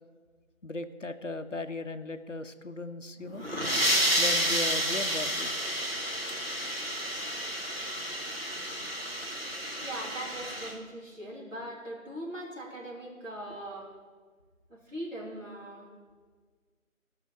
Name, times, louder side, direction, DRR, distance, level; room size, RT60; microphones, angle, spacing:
voice 1, 0.6-3.4 4.2-5.7 6.1-6.2, left 2 dB, 60° left, 9 dB, 0.7 m, -37 dB
sound 1, 3.3-10.7, equal, 45° right, 1.3 m, -30 dB
voice 2, 9.8-13.9 14.7-15.9, right 1 dB, 60° right, -4 dB, 3.5 m, -40 dB
16.0 x 5.6 x 6.3 m, 1.5 s
figure-of-eight pair, 175°, 42 cm